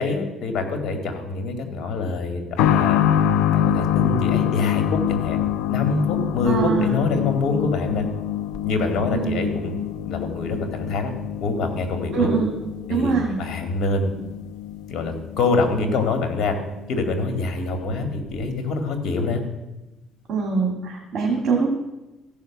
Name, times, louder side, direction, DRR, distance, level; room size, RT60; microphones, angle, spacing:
voice 1, 0.0-3.0 3.5-5.4 5.7-8.1 8.6-11.1 11.4-12.3 12.9-14.2 14.9-16.6 16.9-19.4, left 3 dB, 60° left, 6 dB, 2.1 m, -25 dB
sound 1, 2.6-17.0 17.3-17.4 18.3-18.4, left 10 dB, 90° left, 0.6 m, -25 dB
voice 2, 6.5-7.1 9.1-9.5 12.1-12.6 12.9-13.4 20.3-21.7, right 5 dB, 50° right, -1 dB, 2.4 m, -23 dB
15.0 x 5.6 x 7.2 m, 1.0 s
cardioid pair, 105°, 0 cm